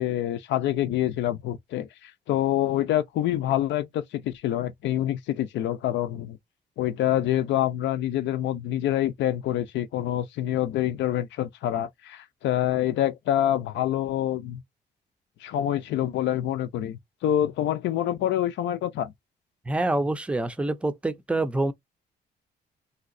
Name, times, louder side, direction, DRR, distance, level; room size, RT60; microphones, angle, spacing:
voice 1, 0.0-6.4 6.8-14.6 15.4-19.1, left 12 dB, 85° left, 0.5 m, -26 dB
voice 2, 19.7-21.7, right 2 dB, 5° right, 0.4 m, -26 dB
3.2 x 2.8 x 2.6 m
cardioid pair, 135°, 18 cm